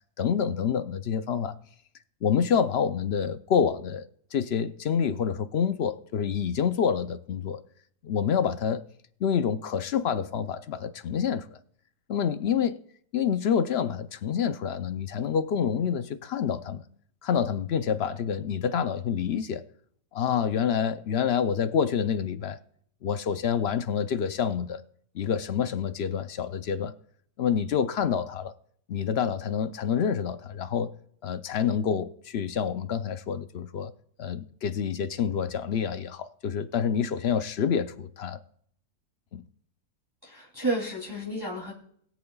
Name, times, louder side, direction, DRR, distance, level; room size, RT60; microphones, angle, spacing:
voice 1, 0.2-1.6 2.2-4.0 4.3-7.6 8.0-8.8 9.2-11.6 12.1-12.8 13.1-16.8 17.2-19.6 20.1-22.6 23.0-24.8 25.1-26.9 27.4-28.5 28.9-30.9 31.2-33.9 34.2-38.4 39.3-39.4, left 7 dB, 60° left, 0.7 m, -27 dB
voice 2, 40.2-41.7, right 2 dB, 15° right, 2.8 m, -31 dB
21.0 x 8.2 x 2.3 m
omnidirectional pair, 1.6 m